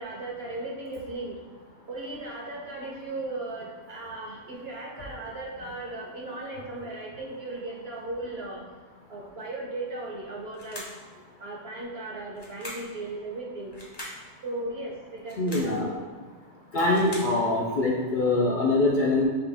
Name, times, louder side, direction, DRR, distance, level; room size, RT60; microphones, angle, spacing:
voice 1, 0.0-1.4 1.9-8.6 9.1-10.9 11.4-13.8 14.4-16.2, right 2 dB, 55° right, -3 dB, 1.0 m, -37 dB
sound 1, 10.5-11.1 12.4-13.0 13.7-14.2 15.2-15.8 16.6-17.4, left 1 dB, 20° left, 0.9 m, -41 dB
voice 2, 15.4-15.9 16.7-19.3, left 2 dB, 50° left, -4 dB, 0.6 m, -24 dB
5.6 x 2.5 x 3.4 m, 1.5 s
omnidirectional pair, 1.3 m